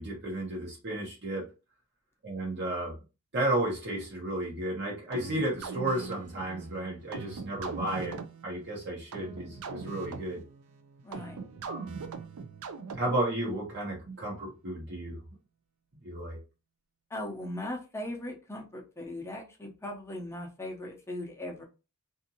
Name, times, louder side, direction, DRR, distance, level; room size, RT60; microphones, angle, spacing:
voice 1, 0.0-1.4 2.2-2.9 3.3-8.2 8.4-10.4 11.6-11.9 12.9-15.2 16.0-16.4, right 1 dB, 55° right, -3 dB, 1.0 m, -33 dB
sound 1, 5.1-13.3, right 5 dB, 80° right, 0.4 m, -41 dB
voice 2, 11.0-11.4 17.1-21.6, left 1 dB, 10° left, 0 dB, 0.6 m, -39 dB
2.6 x 2.5 x 2.7 m, 0.31 s
head